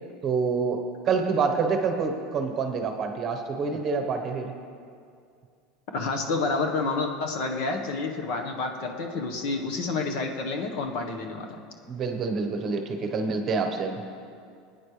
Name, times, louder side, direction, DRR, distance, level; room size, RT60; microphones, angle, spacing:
voice 1, 0.2-4.5 11.9-14.0, right 4 dB, 30° right, 5 dB, 1.1 m, -27 dB
voice 2, 5.9-11.6, left 3 dB, 55° left, 3 dB, 1.2 m, -29 dB
21.0 x 9.4 x 3.3 m, 2.3 s
supercardioid pair, 165°, 0 cm